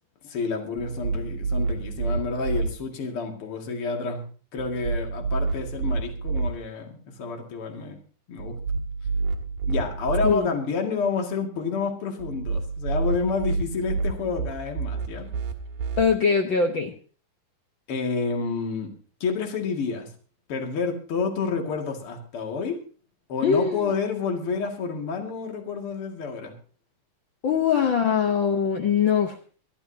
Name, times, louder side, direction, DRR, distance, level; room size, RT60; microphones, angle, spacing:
voice 1, 0.2-8.0 8.3-8.5 9.7-15.3 17.9-18.9 19.2-20.1 20.5-22.8 23.3-26.5, left 4 dB, 45° left, 2 dB, 2.9 m, -29 dB
sound 1, 0.8-2.7 4.6-6.5 8.4-10.3 12.2-16.0, right 4 dB, 90° right, 2.9 m, -28 dB
voice 2, 16.0-16.9 23.4-23.9 27.4-29.4, left 6 dB, 70° left, 4 dB, 1.1 m, -22 dB
24.5 x 11.5 x 2.8 m, 0.40 s
omnidirectional pair, 3.5 m